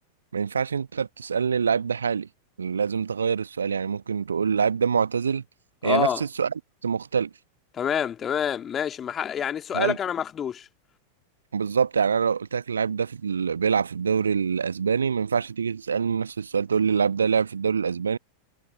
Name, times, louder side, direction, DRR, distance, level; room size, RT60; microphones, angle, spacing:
voice 1, 0.3-2.3 2.6-5.4 5.8-6.5 6.8-7.3 9.7-10.0 11.5-18.2, right 6 dB, 70° right, 1.4 m, -25 dB
voice 2, 5.8-6.2 7.7-10.7, left 8 dB, 25° left, 2.1 m, -27 dB
figure-of-eight pair, 90°, 0 cm